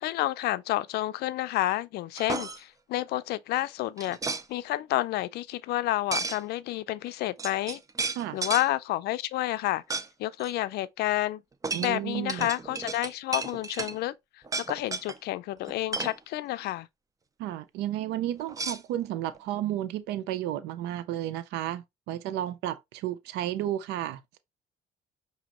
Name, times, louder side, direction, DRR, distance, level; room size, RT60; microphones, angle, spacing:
voice 1, 0.0-4.2 4.5-7.8 8.3-9.8 10.2-11.4 11.8-14.1 14.7-16.9, left 15 dB, 75° left, 0.4 m, -30 dB
sound 1, 2.1-2.6 4.0-4.4 6.1-6.4 7.1-7.2 7.4-8.7 9.9-10.1 10.4-10.5 11.6-14.0 14.4-15.2 15.6-16.2 18.5-19.4, right 4 dB, 20° right, 0.5 m, -33 dB
voice 2, 11.7-12.5 17.4-24.4, right 12 dB, 85° right, 0.5 m, -32 dB
5.9 x 2.7 x 2.9 m
cardioid pair, 110°, 17 cm